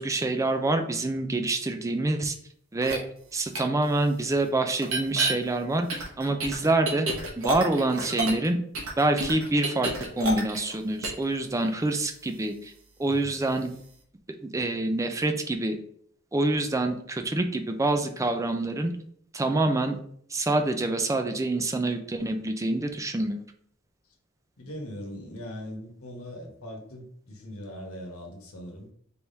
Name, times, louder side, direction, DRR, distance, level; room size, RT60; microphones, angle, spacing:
voice 1, 0.0-2.3 2.7-3.0 3.3-5.9 6.2-7.1 7.4-8.6 9.0-9.9 10.2-12.7 13.0-13.7 14.4-15.8 16.3-18.9 19.3-20.0 20.3-23.4, right 2 dB, 15° right, 6 dB, 0.4 m, -26 dB
sound 1, 2.8-3.0 3.5-3.6 4.8-5.3 5.9-8.5 8.7-10.7 11.0-11.2, right 2 dB, 70° right, 1.1 m, -29 dB
voice 2, 24.6-28.9, equal, 85° left, 1 dB, 1.1 m, -40 dB
4.6 x 3.4 x 2.7 m, 0.64 s
head